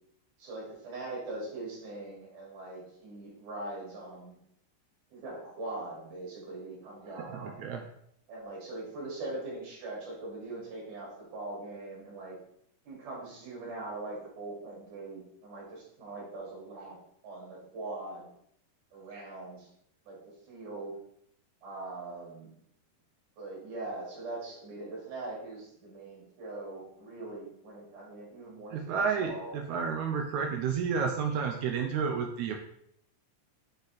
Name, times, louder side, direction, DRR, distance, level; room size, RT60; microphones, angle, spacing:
voice 1, 0.4-4.4 5.1-7.7 8.3-12.4 12.9-17.0 17.2-18.3 18.9-19.7 20.1-20.2 20.5-20.9 21.6-22.5 23.4-29.5, right 2 dB, 65° right, -4 dB, 3.6 m, -41 dB
voice 2, 7.2-7.8 28.7-32.6, right 6 dB, 80° right, 3 dB, 1.7 m, -31 dB
6.8 x 4.1 x 4.0 m, 0.71 s
omnidirectional pair, 4.0 m